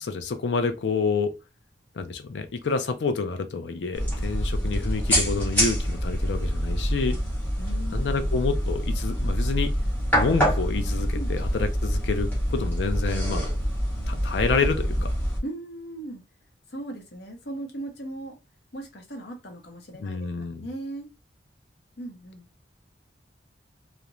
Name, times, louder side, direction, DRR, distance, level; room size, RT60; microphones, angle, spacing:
voice 1, 0.1-1.4 1.9-7.2 7.9-9.7 10.2-13.5 14.1-15.1 20.0-20.6, left 4 dB, 85° left, 0.4 m, -28 dB
sound 1, 3.9-15.4, equal, 10° left, 0.9 m, -26 dB
voice 2, 7.6-8.4 11.1-11.3 15.4-16.2 16.7-18.4 18.7-20.3 20.6-21.1 22.0-22.5, right 1 dB, 70° left, 0.8 m, -38 dB
2.4 x 2.1 x 2.9 m
head